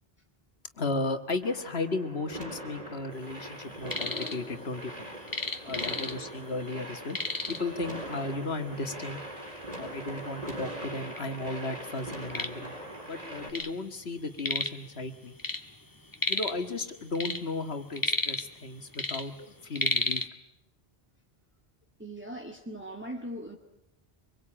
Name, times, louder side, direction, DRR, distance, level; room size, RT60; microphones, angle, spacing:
voice 1, 0.8-5.1 5.6-7.2 7.5-9.2 9.8-12.7 13.1-15.3 16.3-20.2, left 3 dB, 85° left, 8 dB, 2.1 m, -35 dB
sound 1, 1.4-13.5, right 1 dB, 40° right, 4.7 m, -41 dB
sound 2, 3.6-4.4 4.7-6.4 6.7-6.8 7.1-7.8 8.5-8.6 9.2-9.3 10.0-10.1 10.4-11.2 11.7-13.8 14.0-14.9 15.1-16.7 17.0-18.7 18.9-20.3, left 2 dB, 20° left, 1.6 m, -32 dB
voice 2, 5.7-6.0 22.0-23.6, right 1 dB, 10° right, 0 dB, 2.1 m, -40 dB
25.0 x 23.5 x 8.8 m, 0.81 s
omnidirectional pair, 1.0 m